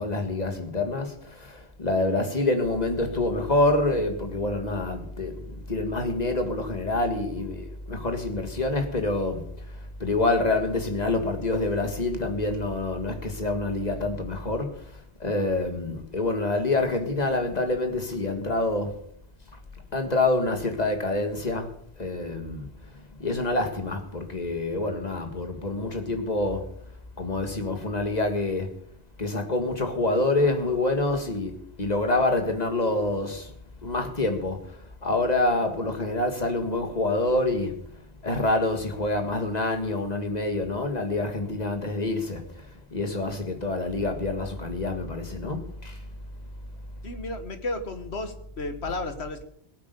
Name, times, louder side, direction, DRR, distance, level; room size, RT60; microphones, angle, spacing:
voice 1, 0.0-9.5 10.0-14.7 15.2-19.0 19.9-21.7 22.0-22.7 23.2-26.7 27.2-28.7 29.2-33.5 33.8-37.8 38.2-42.4 42.9-46.0, left 2 dB, 40° left, 2.0 m, -27 dB
voice 2, 47.0-49.4, left 2 dB, 70° left, 1.9 m, -33 dB
18.0 x 8.5 x 6.8 m
omnidirectional pair, 1.1 m